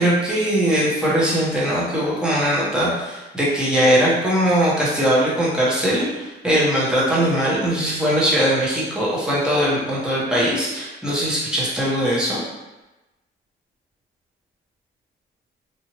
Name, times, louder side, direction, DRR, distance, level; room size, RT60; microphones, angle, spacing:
voice 1, 0.0-12.4, equal, 5° right, -7 dB, 1.1 m, -20 dB
2.7 x 2.6 x 3.0 m, 1.1 s
cardioid pair, 90°, 20 cm